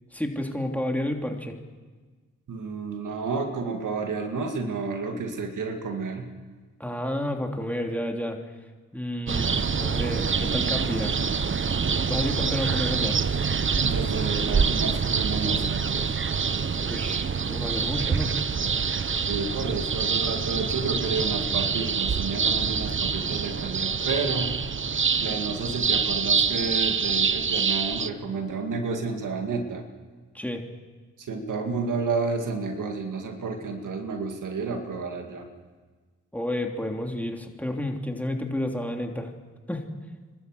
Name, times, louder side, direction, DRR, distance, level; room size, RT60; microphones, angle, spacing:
voice 1, 0.1-1.6 6.8-8.4 8.9-11.2 12.1-13.2 16.7-18.3 30.3-30.6 36.3-39.3 39.7-39.9, left 1 dB, 5° left, 2 dB, 3.2 m, -30 dB
voice 2, 2.5-6.3 13.8-16.1 19.3-24.5 25.2-29.8 31.2-35.5, right 4 dB, 85° right, 4 dB, 2.2 m, -31 dB
sound 1, 9.3-28.1, right 6 dB, 40° right, 0.8 m, -26 dB
27.5 x 13.0 x 8.0 m, 1.4 s
cardioid pair, 45°, 30 cm